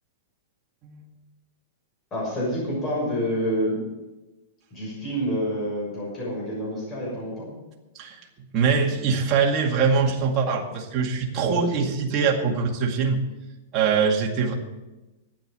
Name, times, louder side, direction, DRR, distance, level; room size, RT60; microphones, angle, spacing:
voice 1, 2.1-3.8 4.7-7.5 11.4-11.8, equal, 20° left, -5 dB, 6.4 m, -28 dB
voice 2, 8.5-13.2 13.7-14.5, right 5 dB, 30° right, -1 dB, 2.1 m, -23 dB
12.0 x 9.3 x 7.6 m, 1.0 s
supercardioid pair, 155°, 0 cm